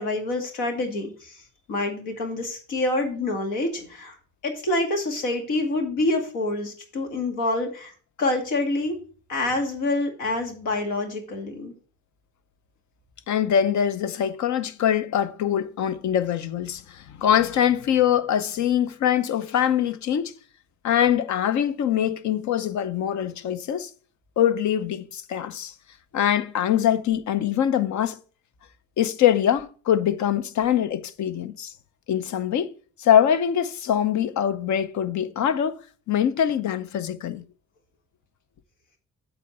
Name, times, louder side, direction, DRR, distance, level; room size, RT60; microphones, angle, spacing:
voice 1, 0.0-1.4 1.7-4.2 4.4-7.9 8.2-9.0 9.3-11.7, left 2 dB, 85° left, 2.2 m, -27 dB
voice 2, 13.3-20.3 20.8-23.9 24.4-25.7 26.1-28.2 29.0-31.7 32.1-32.7 33.0-35.8 36.1-37.5, left 9 dB, 70° left, 0.8 m, -23 dB
8.2 x 4.3 x 6.6 m
cardioid pair, 90°, 30 cm